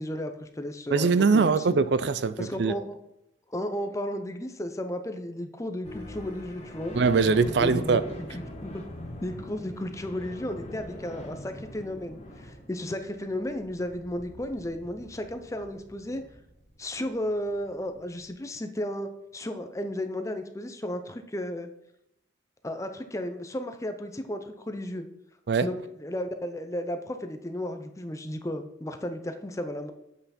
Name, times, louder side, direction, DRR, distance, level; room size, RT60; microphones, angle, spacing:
voice 1, 0.0-1.7 2.4-3.0 3.5-6.9 7.6-7.8 8.3-8.8 9.2-16.2 16.8-21.7 22.6-25.1 25.6-29.9, left 1 dB, 15° left, 7 dB, 0.6 m, -34 dB
voice 2, 0.9-2.7 6.9-8.0 25.5-25.7, right 4 dB, 60° right, 14 dB, 0.4 m, -22 dB
sound 1, 5.8-18.3, equal, 35° left, 1.4 m, -43 dB
8.2 x 5.5 x 4.3 m, 0.82 s
head